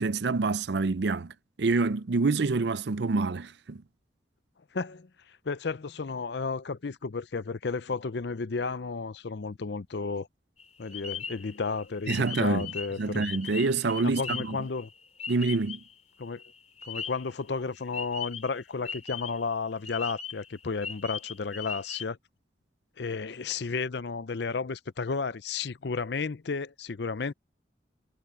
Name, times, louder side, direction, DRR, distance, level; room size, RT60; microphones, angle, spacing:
voice 1, 0.0-3.8 12.1-12.7 13.0-14.6 15.3-15.8, right 3 dB, 65° right, 0.5 m, -27 dB
voice 2, 4.7-10.3 10.8-13.3 14.0-14.9 16.2-16.4 16.8-22.2 23.0-27.3, left 4 dB, 65° left, 0.6 m, -33 dB
sound 1, 10.6-16.0 16.2-17.3 17.9-19.5 19.9-22.0, left 6 dB, 35° left, 5.0 m, -39 dB
head